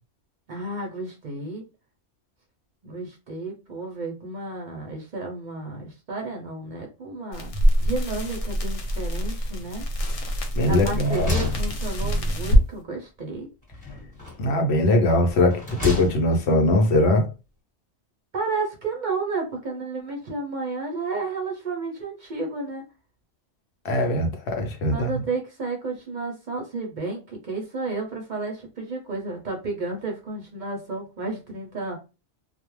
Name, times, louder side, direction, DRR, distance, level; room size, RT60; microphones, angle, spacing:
voice 1, 0.5-1.7 2.8-7.5 7.8-9.8 10.7-13.5 18.3-22.8 24.9-32.0, right 3 dB, 50° right, 0.6 m, -32 dB
sound 1, 7.3-12.7, equal, 90° left, 1.0 m, -24 dB
sound 2, 10.0-10.5 10.8-12.4 13.7-14.6 15.2-16.5, left 4 dB, 5° left, 1.2 m, -32 dB
voice 2, 10.6-11.3 14.4-17.3 23.8-25.2, left 1 dB, 70° left, 0.8 m, -21 dB
2.3 x 2.0 x 3.0 m
omnidirectional pair, 1.2 m